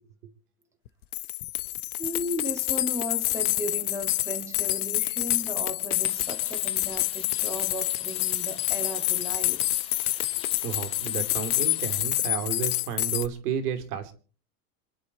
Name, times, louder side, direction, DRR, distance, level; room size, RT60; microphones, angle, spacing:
sound 1, 0.9-1.0 1.1-13.3, left 18 dB, 75° left, 1.0 m, -28 dB
voice 1, 2.0-9.6, equal, 5° right, 3 dB, 2.3 m, -35 dB
sound 2, 6.0-12.0, left 5 dB, 10° left, 2.8 m, -45 dB
voice 2, 10.6-14.1, right 8 dB, 80° right, 8 dB, 3.3 m, -32 dB
27.0 x 10.0 x 4.3 m, 0.42 s
supercardioid pair, 145°, 45 cm